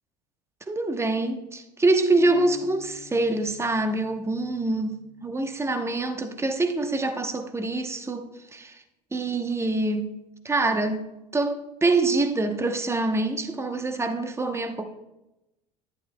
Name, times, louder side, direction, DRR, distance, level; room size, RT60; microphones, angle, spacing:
voice 1, 0.7-8.8 9.1-10.1 10.4-11.1 11.3-14.8, right 2 dB, 10° right, 8 dB, 1.0 m, -25 dB
sound 1, 2.2-5.9, left 10 dB, 70° left, 1.8 m, -45 dB
11.0 x 11.0 x 2.3 m, 0.95 s
hypercardioid pair, 75°, 21 cm